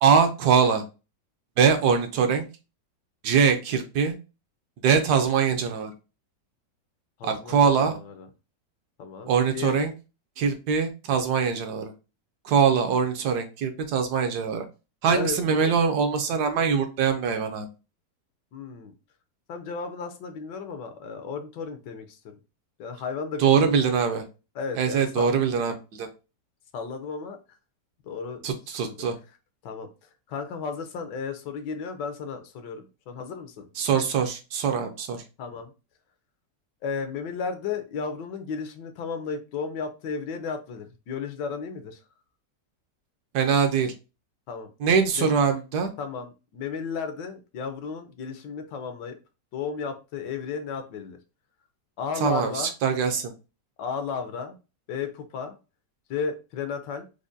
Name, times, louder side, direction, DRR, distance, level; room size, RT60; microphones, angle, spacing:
voice 1, 0.0-0.8 1.6-2.4 3.2-4.1 4.8-5.9 7.2-7.9 9.3-9.9 10.4-11.9 12.4-14.6 15.0-17.7 23.4-24.2 24.8-26.1 28.4-29.2 33.8-35.2 43.3-43.9 44.8-45.9 52.2-53.3, right 6 dB, 70° right, 6 dB, 1.1 m, -23 dB
voice 2, 7.2-8.3 9.0-9.9 15.1-15.8 18.5-18.9 19.5-22.2 22.8-23.8 24.5-25.4 26.7-27.4 28.0-29.0 29.6-33.7 35.4-35.7 36.8-42.0 44.5-44.7 45.1-45.3 46.0-49.2 49.5-51.2 52.0-52.7 53.8-54.6 54.9-55.6 56.1-57.1, left 5 dB, 80° left, 8 dB, 1.3 m, -34 dB
4.8 x 2.2 x 2.6 m, 0.29 s
omnidirectional pair, 1.9 m